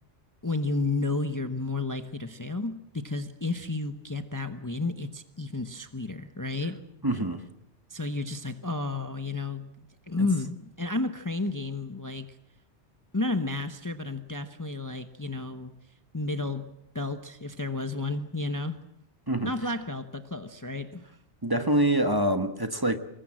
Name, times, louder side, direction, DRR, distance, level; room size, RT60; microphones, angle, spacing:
voice 1, 0.4-6.8 7.9-12.4 13.1-15.7 16.1-16.7 16.9-18.8 19.4-21.1, left 3 dB, 20° left, 1.0 m, -32 dB
voice 2, 7.0-7.4 10.2-10.3 19.3-19.5 21.4-23.0, right 1 dB, 20° right, 1.4 m, -25 dB
26.0 x 22.0 x 7.6 m
omnidirectional pair, 1.2 m